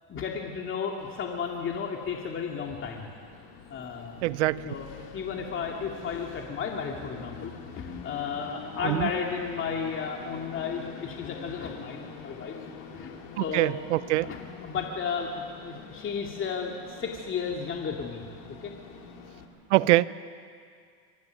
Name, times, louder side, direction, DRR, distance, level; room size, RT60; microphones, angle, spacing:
voice 1, 0.1-3.1 3.7-4.2 4.6-12.6 12.9-13.1 13.4-13.8 14.2-18.2 18.5-18.7, left 6 dB, 35° left, 1 dB, 2.5 m, -33 dB
Train, 1.0-19.5, left 5 dB, 75° left, 3.4 m, -45 dB
voice 2, 4.2-4.6 8.8-9.1 13.4-14.3 19.7-20.1, right 18 dB, 90° right, 18 dB, 0.7 m, -24 dB
24.5 x 14.5 x 9.3 m, 2.2 s
supercardioid pair, 105°, 34 cm